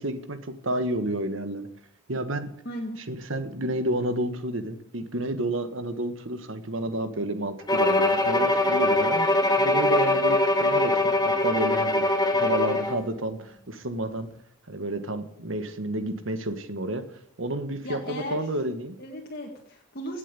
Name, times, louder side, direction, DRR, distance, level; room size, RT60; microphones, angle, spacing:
voice 1, 0.0-1.7 2.1-2.5 3.0-9.3 9.6-12.0 12.3-14.3 14.7-17.1 17.4-19.0, right 1 dB, 75° right, 10 dB, 1.6 m, -30 dB
voice 2, 2.7-3.0 17.8-18.5 19.0-20.2, equal, 50° left, -1 dB, 1.9 m, -36 dB
Bowed string instrument, 7.7-13.0, left 1 dB, 20° left, 1.7 m, -22 dB
17.0 x 7.6 x 8.4 m, 0.76 s
head